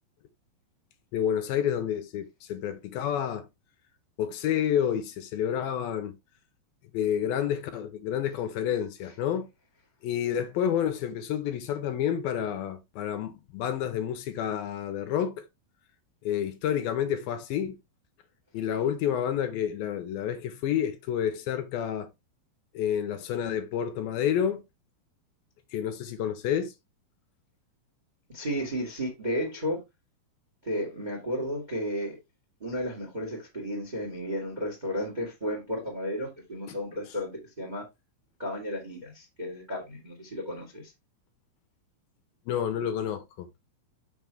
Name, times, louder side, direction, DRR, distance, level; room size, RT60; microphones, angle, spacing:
voice 1, 1.1-3.5 4.2-6.2 6.9-9.5 10.0-15.5 16.2-17.8 18.5-22.1 22.7-24.6 25.7-26.7 42.5-43.5, left 9 dB, 80° left, 2.6 m, -29 dB
voice 2, 28.3-29.8 30.6-32.2 32.6-37.3 37.6-37.8 38.4-40.9, equal, 20° right, 1.2 m, -33 dB
6.1 x 6.1 x 3.4 m
omnidirectional pair, 4.4 m